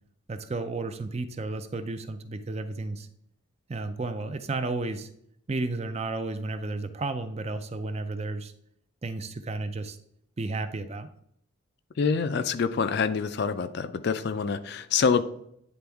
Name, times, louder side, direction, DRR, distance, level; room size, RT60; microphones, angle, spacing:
voice 1, 0.3-3.1 3.7-5.1 5.5-8.5 9.0-10.0 10.4-11.1, right 3 dB, 30° right, 9 dB, 0.4 m, -32 dB
voice 2, 12.0-15.2, left 5 dB, 50° left, 12 dB, 0.3 m, -26 dB
9.5 x 3.4 x 3.5 m, 0.71 s
head